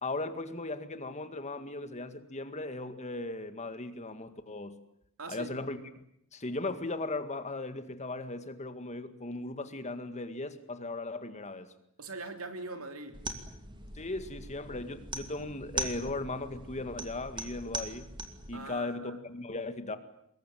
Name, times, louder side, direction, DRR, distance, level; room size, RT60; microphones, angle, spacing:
voice 1, 0.0-4.8 5.3-5.8 6.3-11.7 13.9-18.1 18.5-20.0, left 2 dB, 30° left, 2.0 m, -37 dB
voice 2, 5.2-5.5 12.0-13.3 18.5-19.2, right 3 dB, 70° right, 3.4 m, -42 dB
sound 1, 13.1-18.5, right 2 dB, 20° right, 2.7 m, -40 dB
25.0 x 21.5 x 9.3 m
head